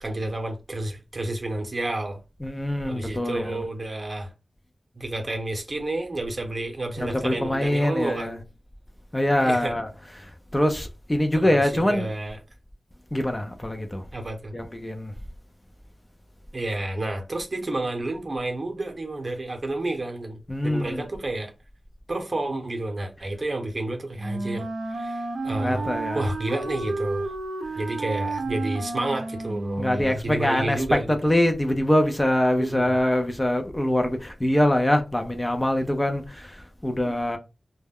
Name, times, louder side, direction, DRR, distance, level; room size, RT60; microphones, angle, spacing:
voice 1, 0.0-2.2 2.9-4.3 4.9-8.4 9.3-9.8 11.4-12.4 14.1-14.5 16.5-21.5 22.1-27.3 27.8-31.2 32.6-33.0 37.0-37.1, right 2 dB, 50° right, 0.7 m, -30 dB
voice 2, 2.4-3.6 7.0-8.3 9.1-9.9 10.5-12.1 13.1-14.0 14.5-15.1 20.5-21.0 25.6-26.2 29.8-36.6 36.8-37.4, left 1 dB, 20° left, 0.5 m, -24 dB
Wind instrument woodwind instrument, 24.2-30.1, right 3 dB, 85° right, 0.5 m, -31 dB
2.2 x 2.1 x 3.5 m
wide cardioid pair, 55°, 0 cm